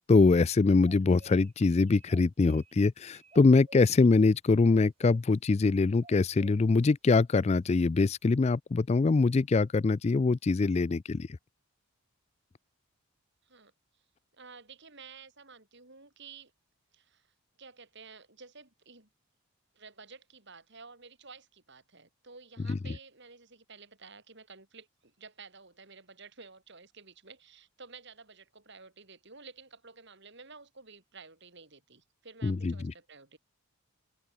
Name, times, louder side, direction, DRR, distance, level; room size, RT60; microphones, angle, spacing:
voice 1, 0.1-11.4 22.7-22.8 32.4-32.9, left 3 dB, 30° left, 0.3 m, -24 dB
sound 1, 0.8-1.5 1.8-2.7 3.1-4.1 4.6-5.2 6.0-6.5, right 2 dB, 30° right, 5.9 m, -54 dB
voice 2, 14.3-16.5 16.9-17.3 17.6-19.1 19.7-33.4, right 4 dB, 50° right, 3.9 m, -52 dB
head